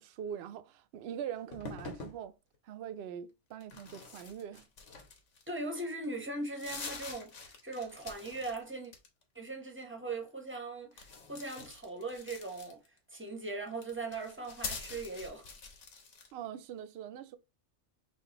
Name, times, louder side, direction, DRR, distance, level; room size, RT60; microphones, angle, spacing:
voice 1, 0.0-2.4 2.6-4.7 16.3-17.4, right 9 dB, 65° right, 0.8 m, -42 dB
sound 1, 1.5-2.2 3.6-5.6 6.0-6.1 6.4-8.6 8.8-9.4 10.9-13.0 13.7-16.3, left 4 dB, 90° left, 1.4 m, -45 dB
voice 2, 5.5-8.9 9.3-12.8 13.1-15.5, right 2 dB, 10° right, 0.9 m, -40 dB
6.3 x 2.5 x 2.9 m
omnidirectional pair, 1.2 m